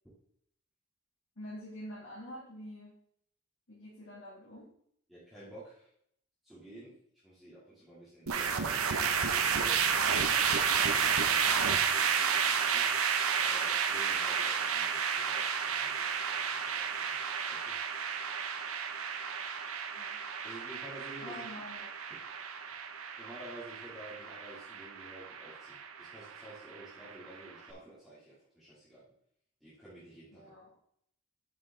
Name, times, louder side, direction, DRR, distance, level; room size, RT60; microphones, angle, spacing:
voice 1, 1.4-2.9 3.7-4.7 19.5-19.6 19.9-20.2 21.2-21.9 30.3-30.7, equal, 65° left, -8 dB, 2.8 m, -46 dB
voice 2, 5.1-5.9 6.4-7.0 7.2-11.1 11.5-12.9 13.3-17.2 17.5-17.7 20.4-21.4 23.2-29.0 29.6-30.5, right 1 dB, ahead, -11 dB, 2.8 m, -51 dB
sound 1, 8.3-27.5, right 6 dB, 75° right, 0.8 m, -31 dB
8.1 x 6.2 x 3.8 m, 0.68 s
head